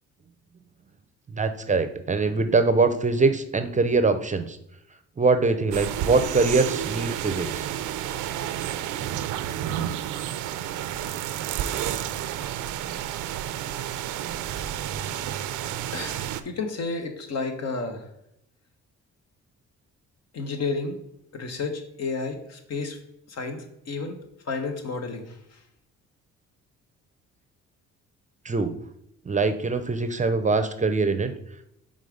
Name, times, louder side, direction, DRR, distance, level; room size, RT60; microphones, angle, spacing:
voice 1, 1.3-4.6 5.2-7.7 28.4-28.7 29.3-31.3, right 3 dB, 25° right, 9 dB, 0.6 m, -23 dB
sound 1, 5.7-16.4, right 11 dB, 85° right, 0.5 m, -30 dB
voice 2, 15.9-18.1 20.3-21.0 21.3-23.0 23.3-24.2 24.5-25.4, left 4 dB, 60° left, 6 dB, 1.1 m, -31 dB
5.3 x 3.6 x 5.0 m, 0.78 s
cardioid pair, 90°, 30 cm